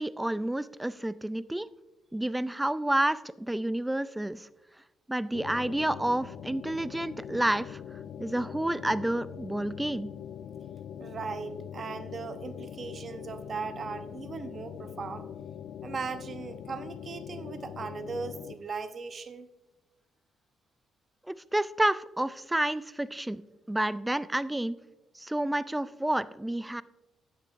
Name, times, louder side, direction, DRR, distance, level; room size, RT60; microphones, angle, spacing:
voice 1, 0.0-1.7 2.1-4.5 5.1-7.8 8.2-10.1 21.3-23.4 23.7-24.8 25.2-26.8, right 1 dB, 10° right, 17 dB, 0.4 m, -29 dB
sound 1, 5.3-18.6, left 9 dB, 75° left, 0.4 m, -42 dB
voice 2, 11.0-15.3 15.8-19.5, right 5 dB, 45° right, 10 dB, 0.8 m, -38 dB
13.0 x 9.0 x 2.6 m, 1.0 s
cardioid pair, 90°, 0 cm